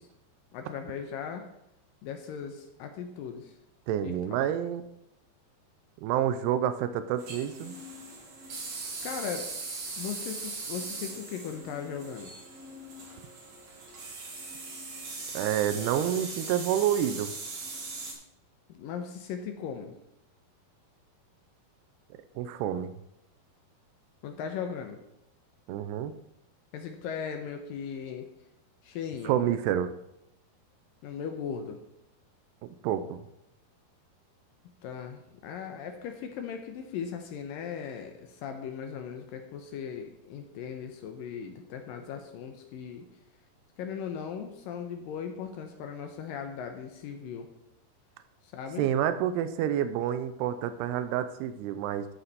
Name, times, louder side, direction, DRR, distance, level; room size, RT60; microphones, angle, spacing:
voice 1, 0.5-1.4 2.0-3.5 4.0-4.4 9.0-9.5 10.0-12.4 18.7-20.0 24.2-25.0 26.7-28.3 28.8-29.3 31.0-31.8 34.8-43.1 43.8-47.5 48.4-48.9, left 7 dB, 80° left, 5 dB, 2.1 m, -38 dB
voice 2, 3.9-4.8 6.0-7.8 15.3-17.3 22.4-22.9 25.7-26.1 29.2-29.9 32.6-33.2 48.8-52.1, right 10 dB, 85° right, 10 dB, 2.7 m, -28 dB
sound 1, 7.2-18.1, right 3 dB, 50° right, 2.6 m, -40 dB
13.0 x 5.8 x 4.1 m, 0.83 s
omnidirectional pair, 4.7 m